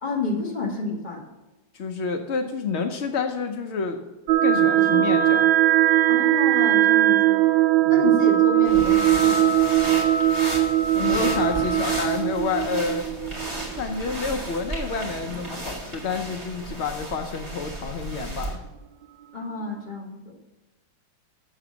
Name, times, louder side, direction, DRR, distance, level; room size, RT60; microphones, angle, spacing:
voice 1, 0.0-1.3 4.8-5.1 6.1-7.4 7.9-9.7 10.9-11.4 19.3-20.4, left 3 dB, 25° left, -2 dB, 1.9 m, -30 dB
voice 2, 1.7-4.0 4.4-5.5 7.9-8.0 11.0-13.0 13.7-18.6, left 4 dB, 80° left, 5 dB, 0.6 m, -29 dB
sound 1, 4.3-13.8, right 12 dB, 90° right, 1.5 m, -20 dB
sound 2, 8.6-18.6, right 1 dB, 15° right, 1.8 m, -34 dB
7.9 x 6.8 x 6.2 m, 1.1 s
omnidirectional pair, 2.1 m